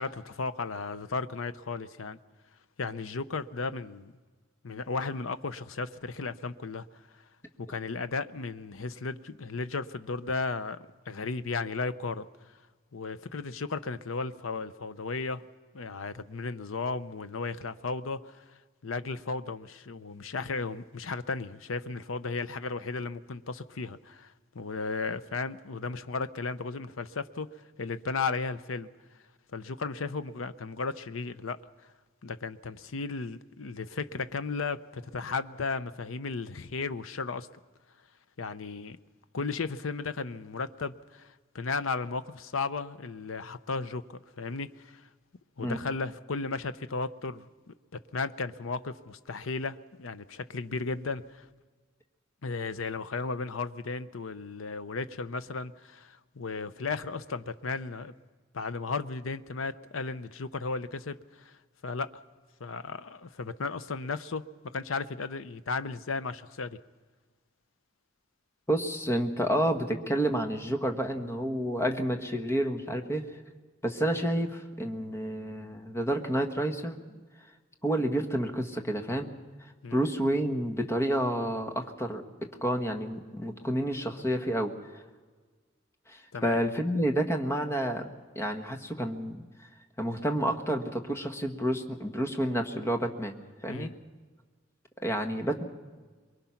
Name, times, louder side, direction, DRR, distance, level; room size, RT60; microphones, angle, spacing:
voice 1, 0.0-2.2 2.8-4.1 4.6-7.2 7.6-12.3 12.9-15.5 15.7-28.9 29.5-31.9 32.2-37.5 38.4-39.0 39.3-45.1 45.6-51.5 52.4-58.1 58.5-61.6 61.8-62.2 62.6-66.8 79.8-80.0 86.3-86.6 93.7-93.9, left 4 dB, 85° left, 12 dB, 0.7 m, -35 dB
voice 2, 68.7-73.2 73.8-77.0 77.8-79.3 79.9-85.0 86.1-88.1 88.3-89.5 90.0-93.3 93.6-93.9 95.0-95.6, right 1 dB, 15° left, 4 dB, 1.5 m, -29 dB
23.5 x 22.5 x 5.8 m, 1.4 s
head